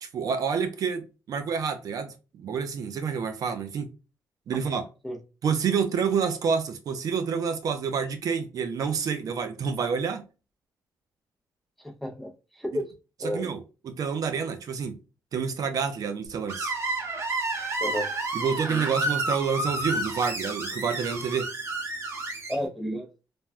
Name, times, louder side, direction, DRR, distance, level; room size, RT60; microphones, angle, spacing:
voice 1, 0.0-3.9 4.5-4.8 5.4-10.2 13.2-13.6 13.9-15.0 15.3-16.7 18.3-21.5, right 6 dB, 60° right, 0.5 m, -28 dB
voice 2, 11.8-12.9 13.2-13.5 17.8-18.1 22.5-23.1, equal, ahead, 0.6 m, -31 dB
Screech, 16.5-22.6, right 2 dB, 40° right, 0.9 m, -30 dB
3.4 x 2.2 x 2.4 m
cardioid pair, 140°, 7 cm